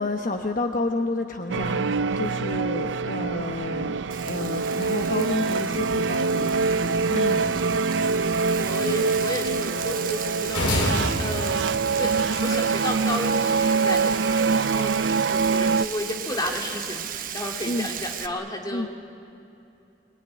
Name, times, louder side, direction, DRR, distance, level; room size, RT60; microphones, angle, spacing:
voice 1, 0.0-1.9 2.2-7.6 17.6-17.9 18.7-18.9, left 2 dB, 50° left, 4 dB, 1.1 m, -30 dB
sound 1, 1.5-15.9, right 4 dB, 90° right, 0.5 m, -24 dB
Frying (food), 4.1-18.3, right 9 dB, 50° right, 1.0 m, -35 dB
voice 2, 8.5-11.7 11.9-15.0 15.3-18.9, left 1 dB, 20° left, 1 dB, 2.4 m, -32 dB
sound 2, 10.5-12.7, left 1 dB, 85° left, 3.1 m, -28 dB
24.5 x 23.5 x 9.8 m, 2.7 s
head